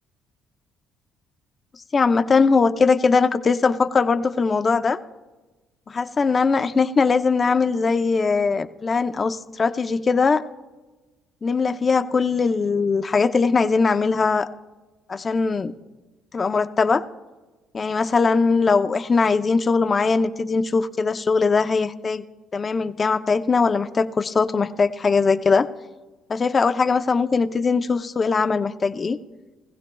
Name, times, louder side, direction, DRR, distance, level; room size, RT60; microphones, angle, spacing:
voice 1, 1.9-5.0 5.9-10.4 11.4-14.5 15.1-15.7 16.3-17.0 17.7-22.2 22.5-25.7 26.3-29.2, left 4 dB, 35° left, 10 dB, 0.6 m, -20 dB
20.0 x 15.5 x 2.3 m, 1.2 s
cardioid pair, 90°, 0 cm